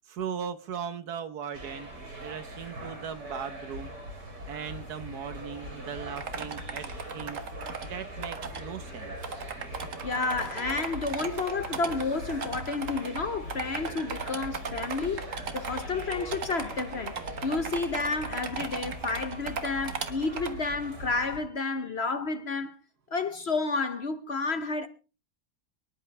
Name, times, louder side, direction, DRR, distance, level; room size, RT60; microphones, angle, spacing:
voice 1, 0.1-1.9 2.2-3.9 4.4-7.4 7.8-9.1, right 7 dB, 70° right, 1.6 m, -38 dB
sound 1, 1.5-21.4, equal, 85° right, 5.9 m, -41 dB
sound 2, 6.2-7.9 8.2-8.6 8.9-9.0 9.2-13.2 13.5-20.5, right 5 dB, 50° right, 1.6 m, -37 dB
voice 2, 10.0-17.2 17.4-22.7 23.1-24.9, left 3 dB, 50° left, 0.9 m, -31 dB
24.0 x 11.0 x 3.3 m
omnidirectional pair, 1.8 m